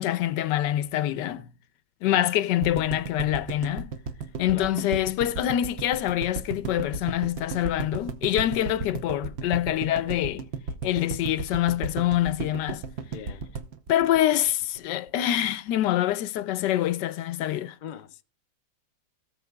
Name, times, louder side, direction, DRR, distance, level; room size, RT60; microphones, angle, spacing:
voice 1, 0.0-1.5 2.0-3.9 4.4-10.4 10.8-12.8 13.9-17.8, left 13 dB, 85° left, 1.3 m, -25 dB
sound 1, 2.6-14.8 15.1-15.2 15.4-15.5, right 4 dB, 50° right, 0.8 m, -34 dB
voice 2, 13.1-13.5 17.8-18.2, left 8 dB, 65° left, 0.4 m, -40 dB
18.0 x 6.4 x 2.3 m
omnidirectional pair, 1.8 m